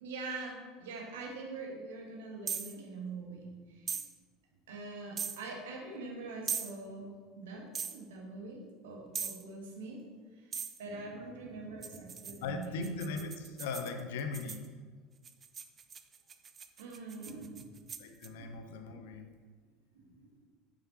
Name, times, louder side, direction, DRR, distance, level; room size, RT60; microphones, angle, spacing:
voice 1, 0.0-4.0 4.7-7.1 7.4-10.0 10.4-12.9 16.8-17.9 18.4-18.5 19.9-20.4, right 3 dB, 65° right, 0 dB, 1.5 m, -44 dB
sound 1, 2.5-2.7 3.9-4.1 5.2-5.4 6.5-6.7 7.7-8.0 9.1-9.4 10.5-10.8 11.8-14.7 15.2-18.3, right 6 dB, 30° right, 0.5 m, -39 dB
voice 2, 12.4-14.6 18.0-19.3, left 4 dB, 60° left, 6 dB, 0.7 m, -39 dB
8.9 x 6.8 x 3.0 m, 1.5 s
figure-of-eight pair, 70°, 0 cm